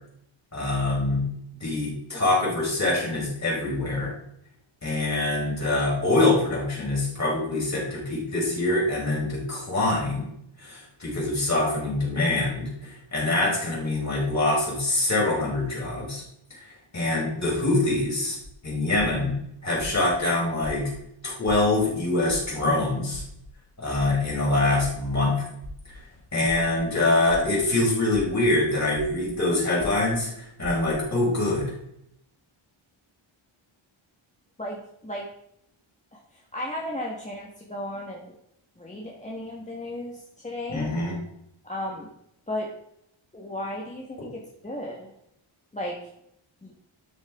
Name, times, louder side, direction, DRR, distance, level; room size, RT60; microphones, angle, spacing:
voice 1, 0.5-1.3 1.6-4.1 4.8-10.3 10.6-12.7 13.1-16.2 16.6-16.7 16.9-18.4 18.6-19.3 19.6-20.9 21.2-23.2 23.8-25.4 26.3-31.7 40.7-41.1, left 2 dB, 35° left, -5 dB, 4.3 m, -24 dB
sound 1, 18.4-18.5 19.0-19.3 19.8-20.1 20.6-21.0 21.5-21.8 22.3-22.6 23.1-23.5 24.0-24.3 24.8-25.1 25.6-26.0 26.5-26.8 27.3-27.6 28.1-28.5 29.0-29.3 29.8-30.1 30.6-31.0, left 1 dB, 85° right, 2.5 m, -40 dB
voice 2, 34.6-35.3 36.1-38.3 38.8-40.9 41.6-42.1 42.5-42.7 43.3-45.1 45.7-46.0 46.6-46.7, left 1 dB, 15° left, -2 dB, 1.2 m, -35 dB
12.5 x 6.6 x 3.5 m, 0.76 s
wide cardioid pair, 150°, 49 cm